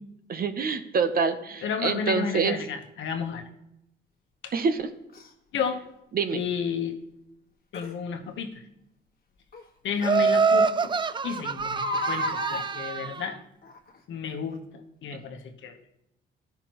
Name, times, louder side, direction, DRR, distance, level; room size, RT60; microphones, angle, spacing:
voice 1, 0.3-2.6 4.5-4.9 6.1-6.4, right 5 dB, 50° right, 10 dB, 0.8 m, -26 dB
voice 2, 1.6-3.5 4.4-4.5 5.5-5.8 6.3-7.0 7.7-8.6 9.8-10.9 11.2-13.4 14.1-15.8, left 6 dB, 70° left, 5 dB, 1.1 m, -32 dB
Crying sobbing, 5.1-5.3 7.7-7.9 9.5-9.6 10.1-10.2 10.5-10.6 11.6-12.7 13.6-14.0 14.5-14.6, left 1 dB, 50° left, 1.5 m, -32 dB
Laughter, 10.0-13.2, right 5 dB, 25° right, 0.4 m, -25 dB
13.0 x 5.7 x 3.0 m, 0.82 s
cardioid pair, 90°, 20 cm